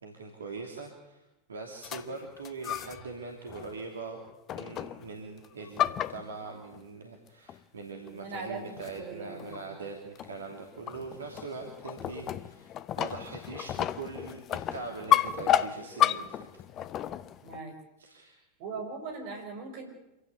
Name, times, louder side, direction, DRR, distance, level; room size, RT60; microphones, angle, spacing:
voice 1, 0.0-1.2 1.5-4.2 4.5-16.5 16.8-16.9 18.0-18.4, right 4 dB, 70° right, 3 dB, 2.8 m, -42 dB
sound 1, 1.8-3.1 3.5-3.8 4.5-5.1 5.4-6.8 7.5-7.6 8.1-8.2 8.8-9.1 9.4-9.6 10.1-17.6, left 11 dB, 30° left, 0.8 m, -31 dB
voice 2, 8.1-9.6 17.4-17.7 18.6-19.9, right 4 dB, 45° right, 5 dB, 6.2 m, -40 dB
26.0 x 16.5 x 8.2 m, 0.96 s
figure-of-eight pair, 90°, 0 cm